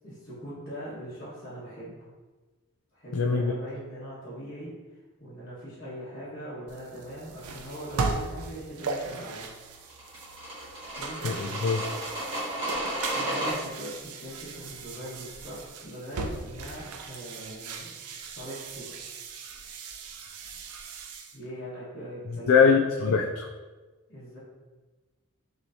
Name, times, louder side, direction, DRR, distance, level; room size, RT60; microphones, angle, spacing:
voice 1, 0.0-2.1 2.9-4.7 5.2-9.4 10.9-11.2 13.1-17.9 18.3-18.9 21.3-22.7 24.1-24.4, equal, 45° left, -12 dB, 1.5 m, -41 dB
voice 2, 3.1-3.5 11.2-12.0 22.5-23.5, left 5 dB, 65° left, 2 dB, 0.3 m, -22 dB
sound 1, 6.7-21.4, right 3 dB, 85° right, 0.5 m, -38 dB
sound 2, 9.9-13.5, right 1 dB, 25° right, 1.5 m, -33 dB
6.0 x 3.2 x 2.7 m, 1.3 s
head